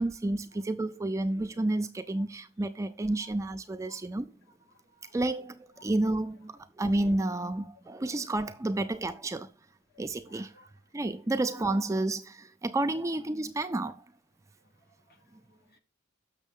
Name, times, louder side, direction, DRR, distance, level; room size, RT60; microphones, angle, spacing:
voice 1, 0.0-4.3 5.1-9.5 10.0-10.5 10.9-14.0, right 2 dB, 15° right, 0.3 m, -30 dB
voice 2, 4.7-5.2 5.8-5.9 9.9-10.7 14.9-15.8, left 3 dB, 50° left, 1.1 m, -60 dB
6.6 x 6.3 x 3.6 m
head